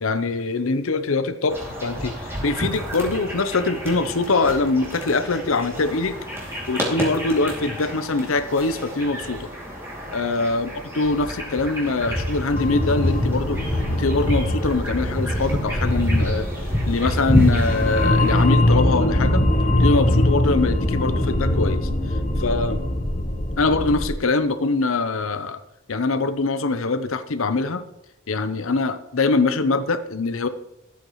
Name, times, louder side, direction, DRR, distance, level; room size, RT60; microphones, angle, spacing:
voice 1, 0.0-6.2 6.7-9.5 10.1-10.7 10.9-16.5 16.9-19.5 19.8-22.8 23.6-25.6 25.9-27.8 28.3-30.5, left 3 dB, 75° left, 11 dB, 0.8 m, -23 dB
sound 1, 1.5-18.4, equal, 10° right, 2.6 m, -28 dB
sound 2, 12.5-24.1, left 1 dB, 35° left, 1.1 m, -22 dB
14.0 x 8.3 x 3.1 m, 0.90 s
head